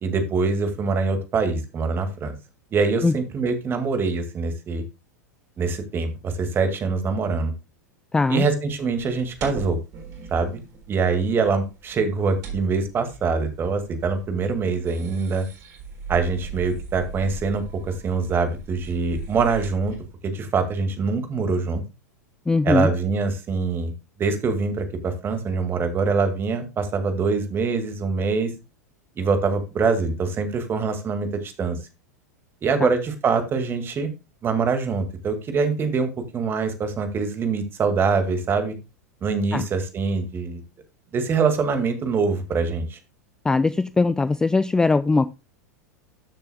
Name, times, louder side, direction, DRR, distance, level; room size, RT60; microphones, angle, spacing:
voice 1, 0.0-2.3 2.7-4.8 5.6-7.5 8.3-9.8 10.3-10.6 10.9-15.5 16.1-20.0 20.2-21.8 22.6-23.9 24.2-28.5 29.2-31.8 32.6-34.1 34.4-38.8 39.2-40.6 41.1-43.0, right 4 dB, 25° right, 7 dB, 1.9 m, -24 dB
voice 2, 8.1-8.4 22.5-22.9 32.8-32.9 39.5-39.6 43.4-45.3, left 3 dB, 5° left, 14 dB, 0.3 m, -20 dB
sound 1, 8.7-20.1, right 5 dB, 40° right, 3.8 m, -39 dB
13.5 x 6.7 x 2.2 m, 0.27 s
figure-of-eight pair, 90°, 9 cm